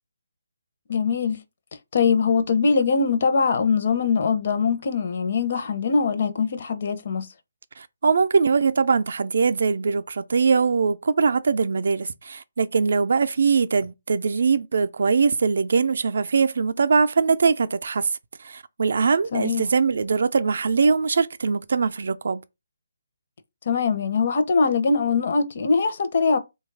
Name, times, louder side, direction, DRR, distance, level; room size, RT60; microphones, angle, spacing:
voice 1, 0.9-1.4 1.9-7.3 19.3-19.6 23.7-26.4, left 5 dB, 45° left, 0.6 m, -22 dB
voice 2, 7.8-18.1 18.4-22.4, right 5 dB, 60° right, 0.3 m, -22 dB
3.1 x 2.3 x 3.3 m
hypercardioid pair, 165°, 0 cm